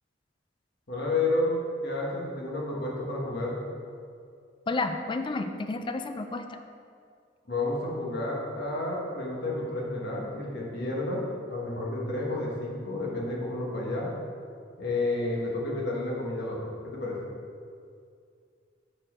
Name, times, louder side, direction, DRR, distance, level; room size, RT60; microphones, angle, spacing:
voice 1, 0.9-1.5 1.8-3.6 7.5-14.1 14.8-17.2, left 2 dB, 65° left, -3 dB, 1.3 m, -31 dB
voice 2, 4.7-6.6, left 3 dB, 25° left, 7 dB, 0.3 m, -31 dB
6.6 x 4.4 x 4.3 m, 2.3 s
head